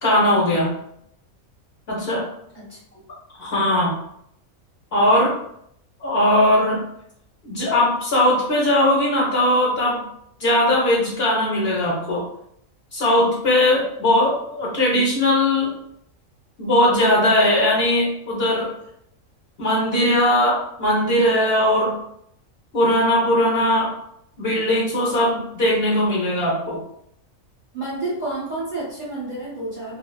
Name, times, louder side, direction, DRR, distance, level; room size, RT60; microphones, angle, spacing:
voice 1, 0.0-0.7 1.9-2.2 3.4-4.0 4.9-5.3 6.0-6.8 7.4-10.0 10.4-12.2 12.9-15.7 16.6-18.7 19.6-21.9 22.7-23.9 24.4-26.8, left 1 dB, 55° left, -5 dB, 0.8 m, -19 dB
voice 2, 2.5-3.0 27.7-30.0, right 2 dB, 45° right, -8 dB, 0.6 m, -30 dB
2.4 x 2.3 x 2.2 m, 0.72 s
omnidirectional pair, 1.4 m